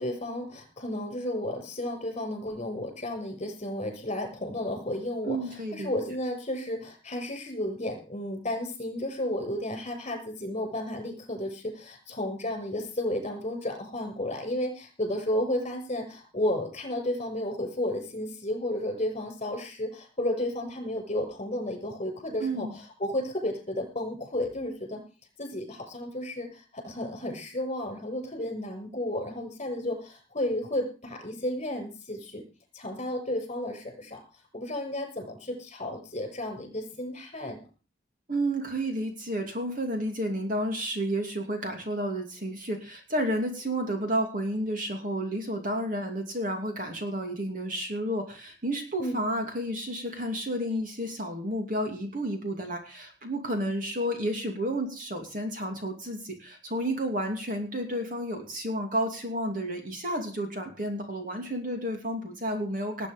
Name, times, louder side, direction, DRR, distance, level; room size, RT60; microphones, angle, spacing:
voice 1, 0.0-25.0 25.4-32.4 32.7-34.2 34.5-37.6 49.0-49.1, left 1 dB, 35° left, 4 dB, 6.5 m, -32 dB
voice 2, 5.2-5.9 22.4-22.7 38.3-63.1, right 1 dB, 45° right, 4 dB, 2.7 m, -31 dB
19.5 x 9.0 x 5.2 m, 0.35 s
head